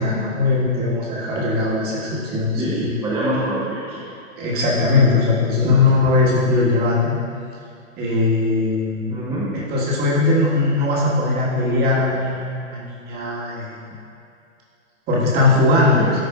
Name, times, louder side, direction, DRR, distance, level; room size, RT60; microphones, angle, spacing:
voice 1, 0.0-2.9 4.4-7.2 8.0-9.0 9.5-13.8 15.1-16.0, left 3 dB, 25° right, -5 dB, 1.6 m, -19 dB
voice 2, 2.6-4.0 5.7-5.8 9.1-9.5 15.9-16.1, right 1 dB, 5° right, -11 dB, 1.0 m, -25 dB
13.0 x 4.8 x 2.4 m, 2.5 s
figure-of-eight pair, 120°, 40 cm